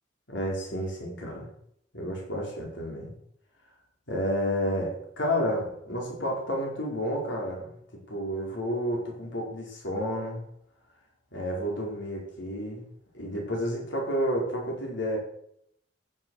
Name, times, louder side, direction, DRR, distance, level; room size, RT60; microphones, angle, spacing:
voice 1, 0.3-1.5 1.9-3.1 4.1-10.4 11.3-12.9 13.1-15.2, equal, 70° left, -2 dB, 4.7 m, -31 dB
15.0 x 7.3 x 6.4 m, 0.71 s
head